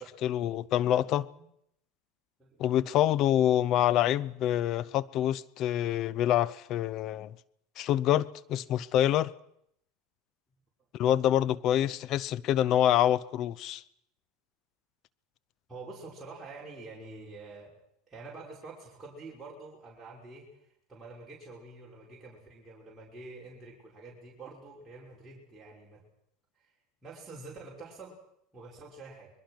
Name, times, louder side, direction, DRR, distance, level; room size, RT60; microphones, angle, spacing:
voice 1, 0.2-1.3 2.6-7.3 7.8-9.3 10.9-13.8, left 11 dB, 50° left, 0.8 m, -26 dB
voice 2, 15.7-17.7 18.1-26.0 26.6-26.7 27.0-28.2 28.5-29.3, right 3 dB, 15° right, 5.7 m, -47 dB
24.5 x 21.5 x 6.4 m
supercardioid pair, 100°, 0 cm